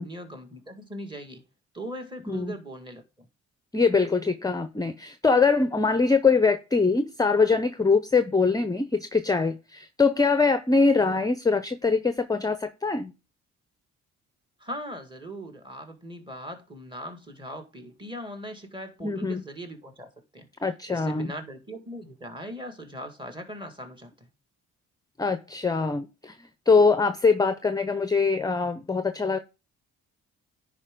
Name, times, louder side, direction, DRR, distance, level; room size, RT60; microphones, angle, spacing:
voice 1, 0.0-1.4 1.7-3.3 14.6-20.5 20.9-24.3, equal, 15° right, 1.9 m, -40 dB
voice 2, 3.7-13.1 19.0-19.4 20.6-21.3 25.2-26.4 26.7-29.4, left 4 dB, 10° left, 0.6 m, -23 dB
9.9 x 5.0 x 3.7 m
cardioid pair, 90°, 30 cm